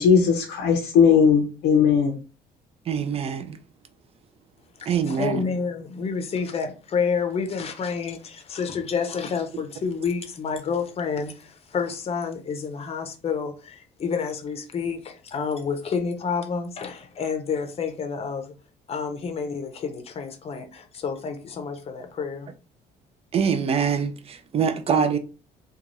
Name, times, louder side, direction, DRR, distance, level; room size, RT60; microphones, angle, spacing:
voice 1, 0.0-2.2, left 6 dB, 85° left, 0.6 m, -18 dB
voice 2, 2.9-3.6 4.9-5.5 23.3-25.2, right 6 dB, 35° right, 0.4 m, -24 dB
voice 3, 4.8-18.5 18.9-22.5, left 5 dB, 35° left, 0.6 m, -29 dB
3.0 x 2.3 x 2.5 m
cardioid pair, 110°, 17 cm